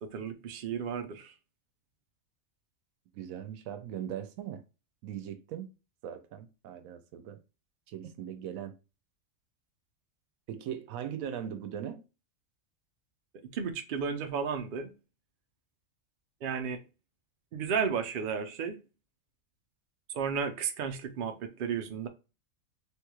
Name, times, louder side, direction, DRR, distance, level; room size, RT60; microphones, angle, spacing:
voice 1, 0.0-1.4 13.4-14.9 16.4-16.8 17.5-18.8 20.1-22.1, right 6 dB, 60° right, 0.5 m, -33 dB
voice 2, 3.1-4.6 5.0-5.7 6.0-7.4 7.9-8.7 10.5-12.0, right 9 dB, 80° right, 1.0 m, -39 dB
3.3 x 3.0 x 2.2 m
omnidirectional pair, 1.4 m